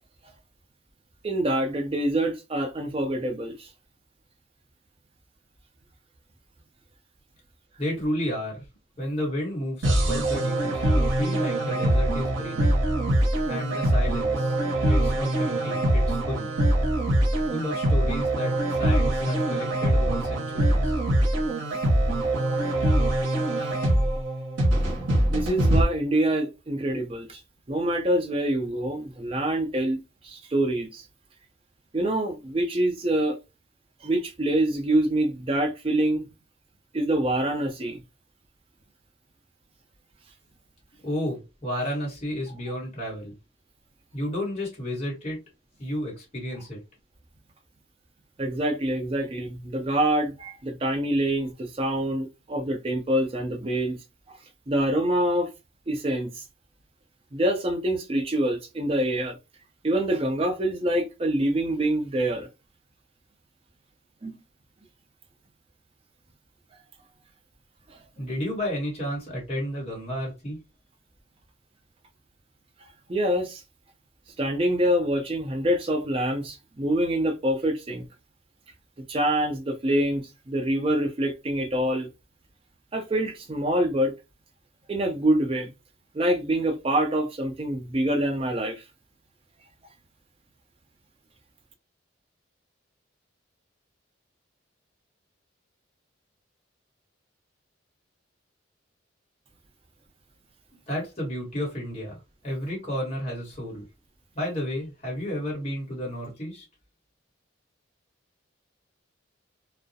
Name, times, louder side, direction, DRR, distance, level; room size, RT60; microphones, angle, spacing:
voice 1, 1.2-3.7 21.7-21.8 23.6-23.7 25.3-27.4 27.7-30.0 30.2-31.0 31.9-33.4 34.0-36.3 36.9-38.0 48.4-54.0 54.7-55.5 55.9-56.4 57.3-59.4 59.8-62.5 64.2-64.4 67.9-68.0 73.1-73.6 74.4-78.0 79.1-82.1 82.9-84.1 84.9-85.7 86.1-88.8, right 1 dB, 30° right, 0.4 m, -25 dB
voice 2, 7.8-8.6 9.0-12.8 13.5-14.6 14.8-16.5 17.5-21.0 41.0-43.3 44.1-45.4 45.8-46.8 68.2-70.6 100.9-102.2 102.4-103.8 104.3-106.6, equal, 30° left, 1.2 m, -32 dB
sound 1, 9.8-25.8, right 1 dB, 70° right, 0.8 m, -23 dB
2.3 x 2.0 x 2.6 m
head